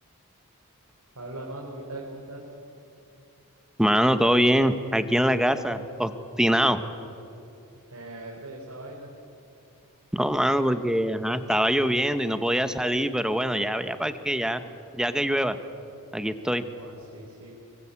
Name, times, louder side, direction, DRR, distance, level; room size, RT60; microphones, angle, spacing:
voice 1, 1.2-2.4 7.9-9.1 16.6-17.6, right 2 dB, 85° right, -2 dB, 4.2 m, -40 dB
voice 2, 3.8-6.1 6.4-6.8 10.1-14.6 14.9-15.6 16.1-16.6, equal, 5° right, 10 dB, 1.0 m, -23 dB
24.5 x 23.5 x 8.4 m, 2.7 s
head